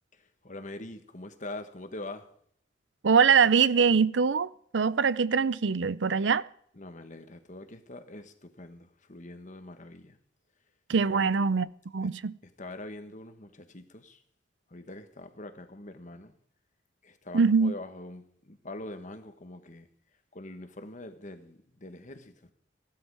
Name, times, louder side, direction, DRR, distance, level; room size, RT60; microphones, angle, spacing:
voice 1, 0.4-2.3 6.7-10.2 11.1-11.3 12.0-12.1 12.6-14.2 14.7-16.3 17.0-19.9 20.3-22.5, left 2 dB, 45° left, 1.5 m, -43 dB
voice 2, 3.0-6.4 10.9-11.7 11.9-12.3 17.3-17.7, right 5 dB, 85° right, 0.6 m, -23 dB
16.0 x 12.0 x 4.8 m
head